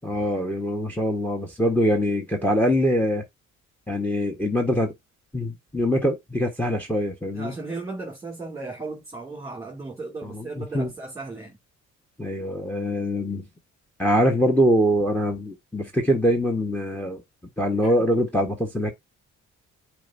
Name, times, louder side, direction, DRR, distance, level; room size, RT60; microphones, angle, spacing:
voice 1, 0.0-3.2 3.9-4.9 5.3-7.5 10.2-10.9 12.2-13.5 14.0-17.2 17.6-18.9, equal, 5° left, 1.4 m, -23 dB
voice 2, 7.3-11.6 17.8-17.9, right 3 dB, 10° right, 2.7 m, -36 dB
9.1 x 4.6 x 2.7 m
cardioid pair, 90°, 30 cm